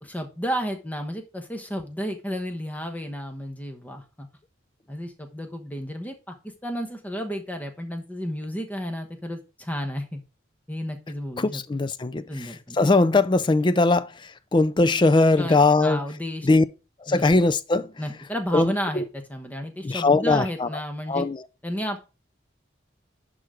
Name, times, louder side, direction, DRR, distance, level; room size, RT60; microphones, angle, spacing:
voice 1, 0.0-4.3 4.9-10.2 10.7-11.6 12.3-12.8 15.4-16.5 17.1-17.2 18.0-21.3 21.6-22.0, equal, 10° left, 1.0 m, -32 dB
voice 2, 11.4-16.0 16.4-16.6 17.1-17.9 18.5-19.0 19.8-20.7 21.1-21.4, left 3 dB, 25° left, 0.4 m, -21 dB
11.0 x 3.8 x 4.8 m
head